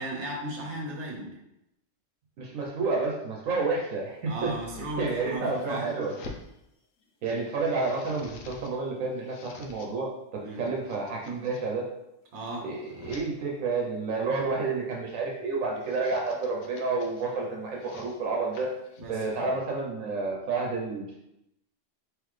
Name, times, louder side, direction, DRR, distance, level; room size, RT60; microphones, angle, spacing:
voice 1, 0.0-1.3 4.3-5.9 10.4-10.6 12.3-12.7 19.0-19.5, right 1 dB, 60° right, -1 dB, 1.2 m, -36 dB
voice 2, 2.4-6.1 7.2-11.8 12.6-18.7 19.1-21.2, right 3 dB, 85° right, -1 dB, 1.1 m, -30 dB
sound 1, 4.2-6.5 7.0-8.7 9.0-9.9 10.5-11.6 12.2-13.3 14.4-14.8 15.6-17.3 17.7-19.6, left 4 dB, 90° left, 1.0 m, -49 dB
3.8 x 3.1 x 3.1 m, 0.86 s
omnidirectional pair, 1.3 m